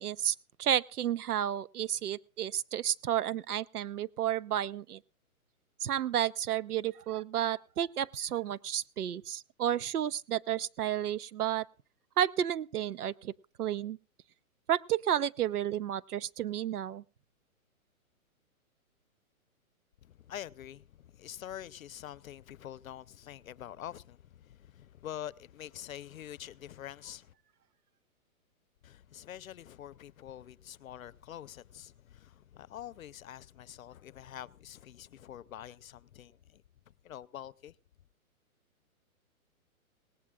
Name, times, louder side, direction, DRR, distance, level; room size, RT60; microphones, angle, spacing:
voice 1, 0.0-5.0 5.8-11.7 12.2-13.3 13.6-14.0 14.7-17.0, right 11 dB, 90° right, 0.8 m, -31 dB
voice 2, 20.0-27.3 28.8-37.8, left 11 dB, 70° left, 0.8 m, -46 dB
18.5 x 18.0 x 2.4 m
hypercardioid pair, 165°, 44 cm